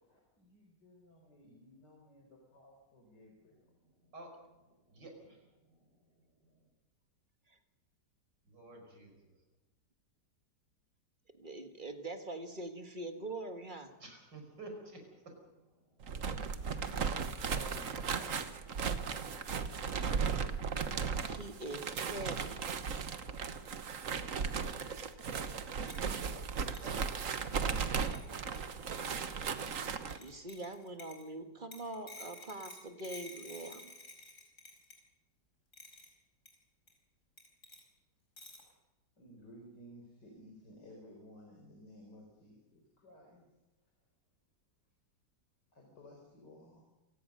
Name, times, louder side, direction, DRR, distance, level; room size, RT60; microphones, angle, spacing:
voice 1, 0.1-3.5 39.2-43.5 45.7-46.9, equal, 75° left, 1 dB, 4.7 m, -56 dB
voice 2, 3.5-6.7 8.4-9.4 14.0-18.4 26.0-27.6, right 2 dB, 80° right, 3 dB, 6.1 m, -54 dB
voice 3, 11.4-13.9 21.2-22.6 30.2-33.9, right 2 dB, 30° right, 7 dB, 1.7 m, -43 dB
sound 1, 16.0-30.2, right 6 dB, 50° right, 1.5 m, -36 dB
sound 2, 25.4-25.5 25.9-26.1 26.7-27.0 28.0-28.3 28.6-28.7 28.9-29.2 30.1-31.3 31.7-35.0 35.7-36.1 36.5-36.6 36.9-37.0 37.4-37.8 38.4-38.7, left 1 dB, 45° left, 5.3 m, -51 dB
27.5 x 17.0 x 6.7 m, 1.1 s
omnidirectional pair, 1.9 m